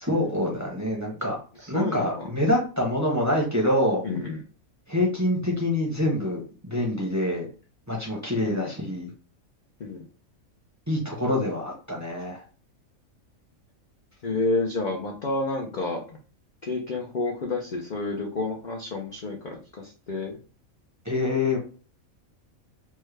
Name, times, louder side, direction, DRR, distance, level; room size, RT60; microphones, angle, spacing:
voice 1, 0.0-1.4 1.7-4.0 4.9-7.5 7.9-9.1 10.9-12.4 21.0-21.6, left 1 dB, 15° right, -3 dB, 0.6 m, -26 dB
voice 2, 1.7-2.3 4.0-4.4 8.5-8.7 9.8-10.0 14.2-16.2 16.6-20.4, left 3 dB, 65° left, 0 dB, 0.4 m, -30 dB
3.4 x 2.1 x 3.2 m, 0.38 s
omnidirectional pair, 1.5 m